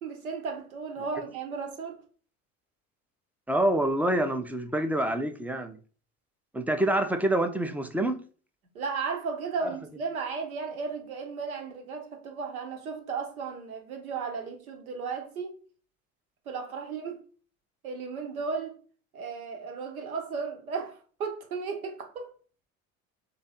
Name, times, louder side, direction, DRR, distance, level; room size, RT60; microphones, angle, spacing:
voice 1, 0.0-2.0 8.7-15.6 16.5-17.2 17.8-18.7 19.1-22.3, right 5 dB, 80° right, 1.1 m, -35 dB
voice 2, 3.5-5.8 6.5-8.2 9.6-9.7, right 1 dB, 5° right, 0.5 m, -26 dB
3.7 x 3.2 x 4.1 m
figure-of-eight pair, 70°, 42 cm